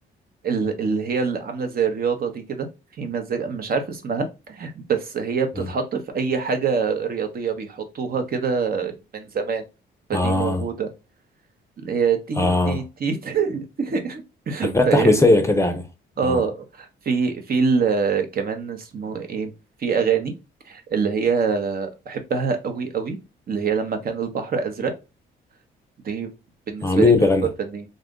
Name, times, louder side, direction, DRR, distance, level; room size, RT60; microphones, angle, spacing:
voice 1, 0.4-2.7 3.0-9.6 10.1-10.9 11.8-15.2 16.2-19.5 19.8-20.3 20.7-23.2 23.5-24.9 26.0-26.3 26.7-27.1 27.6-27.8, right 5 dB, 50° right, 0.8 m, -25 dB
voice 2, 10.1-10.7 12.4-12.8 14.6-15.8 16.2-16.4 26.8-27.5, left 2 dB, 15° left, 0.6 m, -18 dB
2.6 x 2.4 x 3.6 m
cardioid pair, 90°, 20 cm